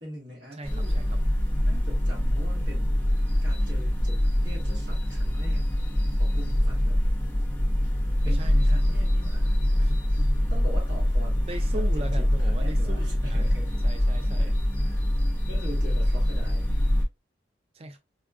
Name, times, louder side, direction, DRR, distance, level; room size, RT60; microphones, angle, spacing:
voice 1, 0.0-1.0 1.6-3.1 3.4-5.7 6.1-7.0 8.2-9.9 10.5-13.8 14.4-14.5 14.8-16.8, equal, 65° right, 1.6 m, -43 dB
voice 2, 0.5-1.2 8.2-8.9 9.8-10.3 11.5-13.5 13.8-14.5 17.7-18.0, right 1 dB, 30° right, 0.4 m, -38 dB
sound 1, 0.6-17.0, left 1 dB, 10° left, 0.7 m, -24 dB
4.2 x 2.3 x 2.3 m
head